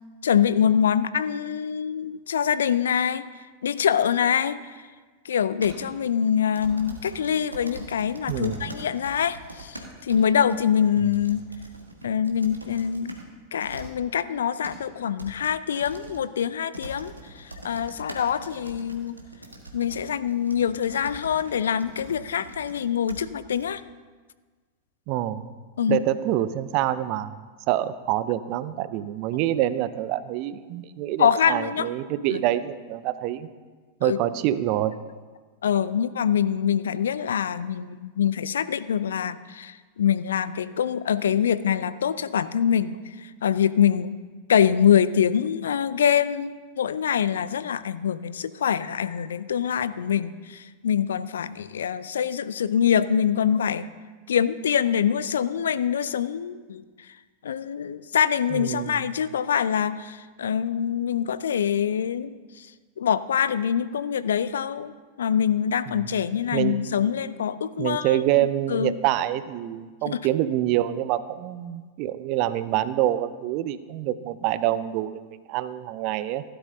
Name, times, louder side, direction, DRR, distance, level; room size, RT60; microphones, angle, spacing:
voice 1, 0.2-3.2 3.6-4.6 5.2-11.4 12.0-13.2 13.5-19.1 19.7-23.8 25.8-26.0 31.2-31.9 32.3-32.4 34.0-34.2 35.6-44.2 44.5-53.9 54.3-56.8 57.4-62.7 63.0-64.9 65.2-68.2 68.7-69.0 70.1-70.2, left 8 dB, 65° left, 15 dB, 0.4 m, -24 dB
sound 1, 5.6-5.9 6.6-13.2 13.6-13.9 14.3-14.8 15.2-15.3 15.8-16.2 16.7-22.8 23.1-23.2 23.5-23.6, right 1 dB, 85° right, 1.4 m, -42 dB
voice 2, 8.3-8.7 11.0-11.1 25.1-25.4 25.9-33.5 34.0-35.0 58.5-59.1 65.9-66.0 66.5-66.8 67.8-75.2 75.5-76.4, right 13 dB, 45° right, 15 dB, 0.5 m, -26 dB
16.0 x 11.0 x 2.7 m, 1.4 s
figure-of-eight pair, 90°, 0 cm